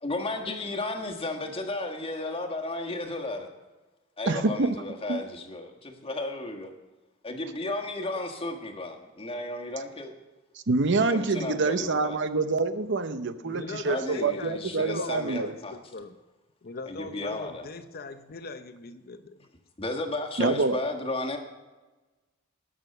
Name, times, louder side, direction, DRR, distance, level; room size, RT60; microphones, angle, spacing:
voice 1, 0.0-3.5 4.2-6.7 7.2-10.1 11.1-12.2 13.8-15.7 16.9-17.6 19.8-21.4, left 2 dB, 30° left, 2 dB, 1.5 m, -33 dB
voice 2, 4.3-4.7 5.1-5.2 10.7-15.5 20.4-20.8, right 3 dB, 60° right, 11 dB, 0.8 m, -26 dB
voice 3, 13.4-16.2 16.6-19.5, left 3 dB, 50° left, 9 dB, 0.7 m, -40 dB
19.0 x 6.6 x 6.6 m, 1.2 s
head